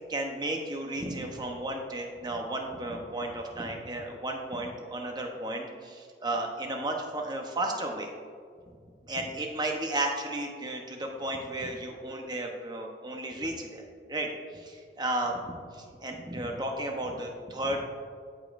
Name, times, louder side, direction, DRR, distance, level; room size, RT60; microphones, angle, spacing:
voice 1, 0.1-8.1 9.1-17.8, right 1 dB, 25° right, 2 dB, 0.9 m, -34 dB
14.5 x 5.2 x 2.5 m, 2.1 s
head